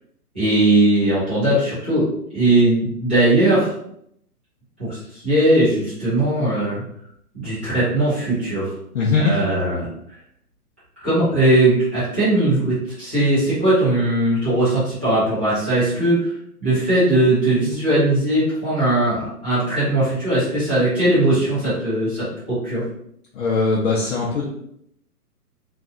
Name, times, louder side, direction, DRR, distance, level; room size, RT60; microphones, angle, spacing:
voice 1, 0.3-2.0 2.3-3.7 4.8-6.8 7.3-8.7 9.2-9.9 11.0-16.3 16.6-22.8, right 1 dB, 10° right, -17 dB, 0.4 m, -19 dB
voice 2, 8.9-9.3 23.3-24.4, left 4 dB, 55° left, -4 dB, 0.7 m, -20 dB
2.6 x 2.3 x 2.5 m, 0.71 s
hypercardioid pair, 150°, 47 cm